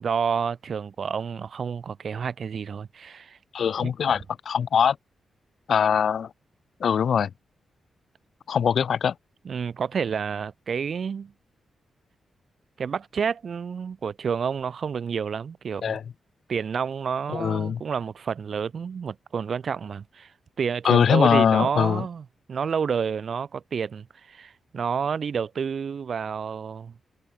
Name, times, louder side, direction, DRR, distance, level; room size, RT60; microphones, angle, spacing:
voice 1, 0.0-3.4 3.8-3.9 9.5-11.3 12.8-16.0 16.5-20.3 20.6-26.9, right 6 dB, 45° right, 3.5 m, -29 dB
voice 2, 3.5-5.0 5.7-6.3 6.8-7.3 8.5-9.1 15.8-16.0 17.3-17.8 20.8-22.0, left 7 dB, 55° left, 0.8 m, -22 dB
wide cardioid pair, 175°, 0 cm